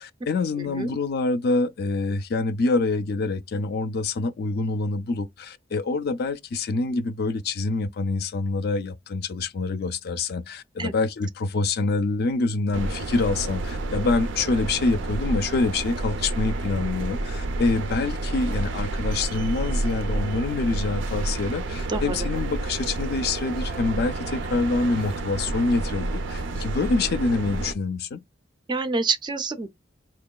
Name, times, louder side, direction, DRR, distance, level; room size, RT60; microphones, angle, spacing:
voice 1, 0.0-28.2, left 3 dB, 60° left, 0.4 m, -26 dB
voice 2, 0.6-0.9 10.8-10.9 21.9-22.3 28.7-29.7, right 3 dB, 25° right, 0.4 m, -27 dB
sound 1, 12.7-27.7, right 2 dB, 85° right, 0.5 m, -29 dB
4.4 x 2.9 x 2.2 m
head